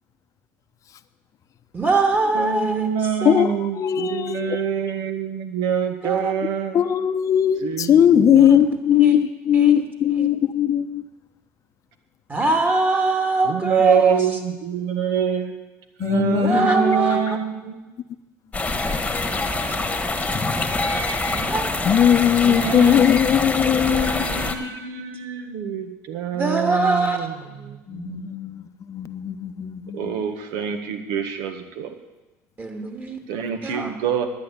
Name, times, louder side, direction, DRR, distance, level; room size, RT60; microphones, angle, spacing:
voice 1, 1.7-3.5 6.0-6.3 8.4-9.2 9.5-9.8 10.1-10.3 12.3-14.2 16.3-17.3 21.2-21.7 26.3-27.3 32.6-33.2 33.6-33.9, right 3 dB, 25° right, 3 dB, 2.7 m, -23 dB
voice 2, 2.3-6.8 7.6-8.6 13.4-15.5 16.0-17.8 22.4-23.1 23.6-27.3 27.6-28.3 29.9-31.9 33.3-34.3, right 7 dB, 70° right, 6 dB, 1.7 m, -26 dB
voice 3, 3.2-4.6 6.7-11.0 16.0-17.0 21.8-24.7 27.9-30.2, left 10 dB, 45° left, 12 dB, 0.8 m, -19 dB
sound 1, 18.5-24.5, left 2 dB, 15° left, 1.4 m, -25 dB
10.5 x 9.7 x 8.7 m, 1.1 s
hypercardioid pair, 75°, 8 cm